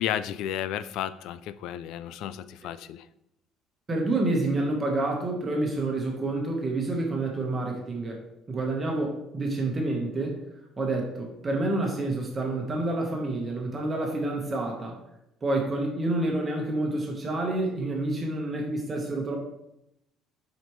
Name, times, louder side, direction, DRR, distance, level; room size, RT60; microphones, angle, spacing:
voice 1, 0.0-3.0, left 10 dB, 75° left, 14 dB, 0.3 m, -32 dB
voice 2, 3.9-8.2 8.5-10.4 10.8-15.0 15.4-19.4, right 2 dB, 25° right, 1 dB, 1.3 m, -28 dB
7.7 x 5.1 x 3.2 m, 0.82 s
cardioid pair, 135°, 0 cm